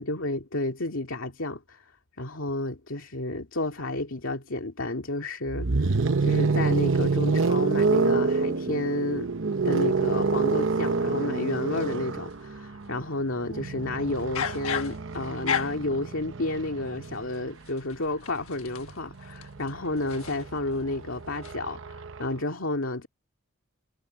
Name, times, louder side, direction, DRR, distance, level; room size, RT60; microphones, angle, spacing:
voice 1, 0.0-1.9 2.2-5.9 6.2-9.3 9.6-23.1, left 2 dB, 70° left, 2.4 m, -31 dB
sound 1, 5.5-17.4 18.7-22.3, right 4 dB, 65° right, 0.9 m, -27 dB
sound 2, 12.3-12.9 14.2-16.0 17.0-20.8 21.2-21.5, left 7 dB, 85° left, 1.3 m, -35 dB
head